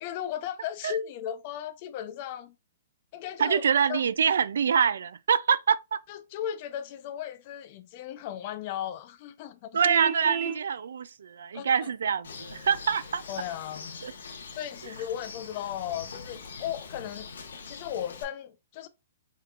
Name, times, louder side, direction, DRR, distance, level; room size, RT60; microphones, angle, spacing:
voice 1, 0.0-2.5 3.1-4.0 6.1-9.8 11.5-11.9 13.3-14.0 14.5-17.3 17.7-18.9, left 10 dB, 35° left, 0.5 m, -36 dB
voice 2, 3.4-6.0 9.7-13.2 14.0-14.1, right 7 dB, 85° right, 0.3 m, -25 dB
Vehicle horn car horn honking, 9.8-10.6, right 7 dB, 30° right, 0.8 m, -31 dB
Bird, 12.2-18.2, left 5 dB, 85° left, 1.1 m, -43 dB
4.5 x 3.6 x 2.4 m
hypercardioid pair, 165°, 0 cm